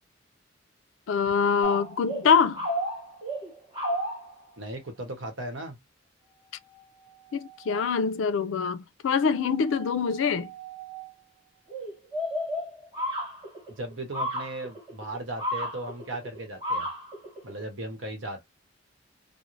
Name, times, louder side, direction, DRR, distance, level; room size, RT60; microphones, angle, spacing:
voice 1, 1.1-2.7 7.3-10.5, left 6 dB, 80° left, 0.4 m, -24 dB
sound 1, 1.6-4.4 6.8-6.9 7.1-7.2 7.4-7.9 9.2-11.1 11.7-17.6, equal, 25° right, 1.0 m, -34 dB
voice 2, 4.6-5.8 13.8-16.9 17.4-18.4, right 1 dB, 85° right, 0.9 m, -37 dB
2.5 x 2.0 x 3.0 m
head